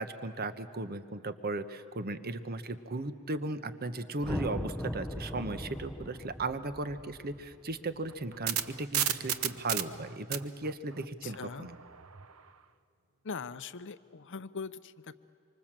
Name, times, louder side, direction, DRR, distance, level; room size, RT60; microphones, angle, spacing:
voice 1, 0.0-11.8, right 2 dB, 45° right, 11 dB, 1.1 m, -36 dB
sound 1, 4.2-8.6, equal, 5° left, 0.6 m, -39 dB
sound 2, 8.1-12.3, right 11 dB, 80° right, 1.0 m, -33 dB
voice 2, 11.2-11.7 13.2-15.1, left 5 dB, 60° left, 14 dB, 0.7 m, -41 dB
26.0 x 25.0 x 7.5 m, 2.8 s
head